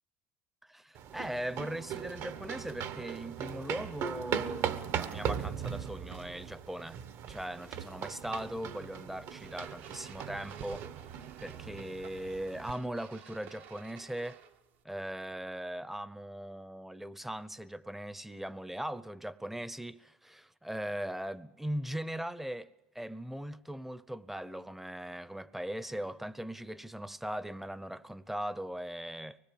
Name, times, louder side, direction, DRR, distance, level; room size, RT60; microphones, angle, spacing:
voice 1, 0.6-7.0 7.3-10.9 11.4-14.4 14.8-22.7 22.9-29.4, right 1 dB, 5° right, 0.8 m, -39 dB
sound 1, 1.0-12.7, right 8 dB, 55° right, 1.3 m, -39 dB
sound 2, 9.3-14.8, right 8 dB, 75° right, 1.9 m, -54 dB
24.0 x 20.5 x 7.0 m
supercardioid pair, 105°, 6 cm